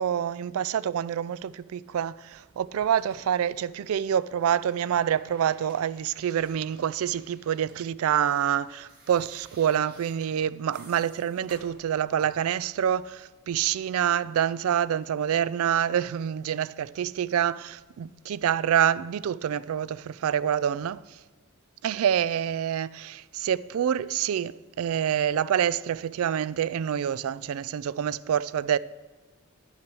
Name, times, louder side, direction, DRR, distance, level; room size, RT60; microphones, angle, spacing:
voice 1, 0.0-21.0 21.8-28.8, right 9 dB, 70° right, 0.3 m, -27 dB
sound 1, 2.3-4.0 4.3-12.5 13.5-13.7, right 2 dB, 45° right, 2.2 m, -55 dB
10.5 x 5.9 x 6.2 m
head